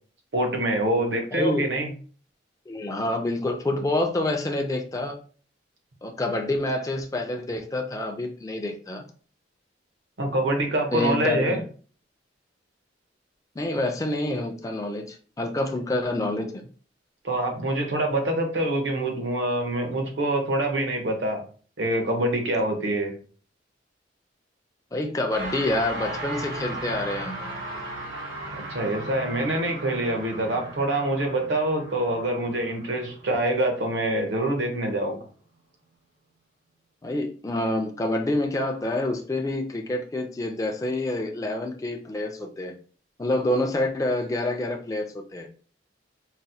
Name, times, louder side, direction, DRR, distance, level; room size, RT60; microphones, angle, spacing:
voice 1, 0.3-1.9 10.2-11.6 17.2-21.4 21.8-23.1 28.7-35.2, right 1 dB, 70° right, 3 dB, 0.8 m, -25 dB
voice 2, 1.3-1.7 2.7-5.2 6.0-9.0 10.9-11.6 13.6-16.6 24.9-27.5 37.0-42.7 43.2-45.5, left 1 dB, 20° left, 3 dB, 0.3 m, -27 dB
sound 1, 25.3-34.8, right 1 dB, 85° right, 1.6 m, -37 dB
4.1 x 2.0 x 2.6 m, 0.41 s
head